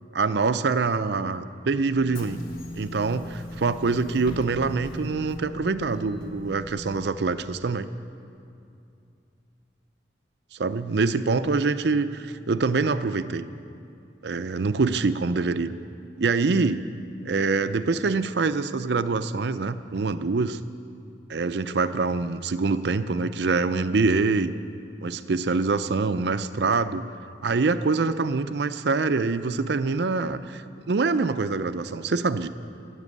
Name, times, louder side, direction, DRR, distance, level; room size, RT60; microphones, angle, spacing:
voice 1, 0.1-2.4 2.7-7.9 10.5-13.5 14.2-15.7 16.2-16.9 17.3-20.6 21.3-24.5 25.0-27.0 27.4-32.5, right 4 dB, 65° right, 12 dB, 0.5 m, -25 dB
Bus / Engine, 1.9-7.1, left 1 dB, 50° left, 1.5 m, -39 dB
15.0 x 8.2 x 9.6 m, 2.6 s
head